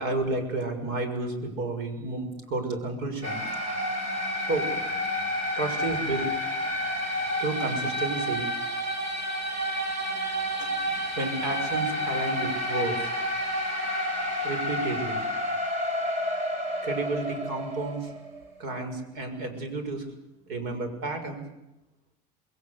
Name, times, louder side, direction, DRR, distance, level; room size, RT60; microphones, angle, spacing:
voice 1, 0.0-3.4 4.5-4.7 5.6-6.4 7.0-8.5 10.6-10.7 11.2-13.0 14.4-15.3 16.8-18.1 18.6-20.0 20.5-21.4, right 2 dB, 70° right, 7 dB, 6.4 m, -31 dB
sound 1, 3.2-18.5, equal, 45° right, 5.2 m, -30 dB
28.0 x 21.5 x 8.3 m, 0.93 s
cardioid pair, 170°, 17 cm